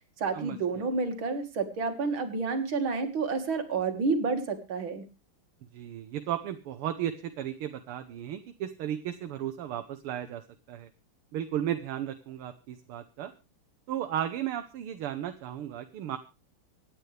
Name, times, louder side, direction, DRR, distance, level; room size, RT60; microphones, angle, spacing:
voice 1, 0.2-5.0, right 4 dB, 65° right, 7 dB, 2.6 m, -29 dB
voice 2, 5.7-10.4 10.7-10.9 11.3-13.3 13.9-16.2, right 11 dB, 80° right, 8 dB, 1.9 m, -34 dB
25.5 x 9.6 x 3.4 m, 0.30 s
omnidirectional pair, 2.4 m